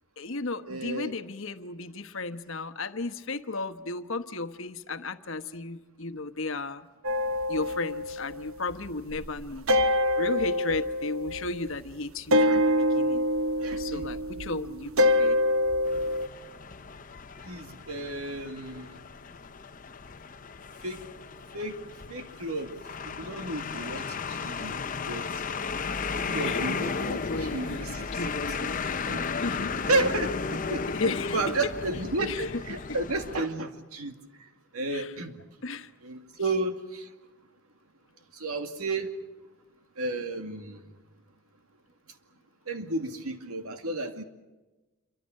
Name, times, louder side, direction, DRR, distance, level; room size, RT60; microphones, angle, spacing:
voice 1, 0.2-6.9 7.5-13.3 13.8-15.4 26.4-28.5 28.8-29.7 30.9-31.6 32.2-32.4 32.7-32.8 34.9-35.1 35.6-35.9, left 3 dB, 60° left, 9 dB, 1.2 m, -35 dB
voice 2, 0.7-1.2 12.4-12.6 13.6-14.0 17.4-19.0 20.8-21.0 21.5-21.8 22.1-22.8 23.0-24.8 25.1-25.5 26.1-28.2 28.6-28.8 29.1-29.3 29.8-35.4 36.0-37.1 38.3-39.2 40.0-40.9 42.7-44.2, right 2 dB, 85° right, 6 dB, 2.3 m, -33 dB
sound 1, 7.0-8.9 9.1-11.8 12.3-16.3, left 1 dB, 70° right, 1.1 m, -26 dB
sound 2, 15.8-33.4, left 4 dB, 35° left, 0.7 m, -34 dB
27.5 x 24.5 x 6.6 m, 1.2 s
head